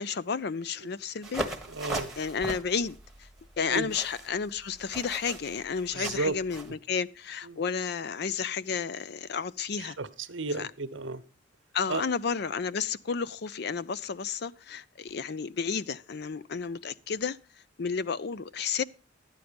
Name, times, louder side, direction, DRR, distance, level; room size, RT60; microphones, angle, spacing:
voice 1, 0.0-1.4 2.2-3.3 3.6-10.0 10.6-10.7 11.7-17.4 17.8-18.8, left 6 dB, 55° left, 0.5 m, -32 dB
sound 1, 1.2-6.7, right 1 dB, 5° right, 1.4 m, -38 dB
voice 2, 1.7-2.5 3.6-3.9 5.9-6.4 7.5-7.6 9.8-11.2 11.9-12.0, right 3 dB, 75° right, 1.0 m, -33 dB
12.5 x 9.1 x 5.2 m
head